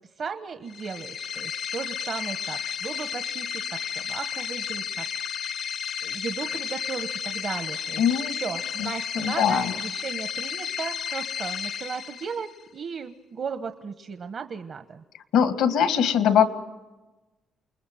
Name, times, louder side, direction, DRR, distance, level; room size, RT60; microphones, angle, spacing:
voice 1, 0.0-5.1 5.4-5.5 6.0-15.0, right 6 dB, 55° right, 8 dB, 1.2 m, -36 dB
sound 1, 0.7-12.6, left 8 dB, 65° left, 0.9 m, -32 dB
voice 2, 8.0-8.4 9.2-9.6 15.3-16.5, left 8 dB, 85° left, 9 dB, 2.0 m, -21 dB
28.5 x 21.0 x 9.3 m, 1.1 s
cardioid pair, 90°, 0 cm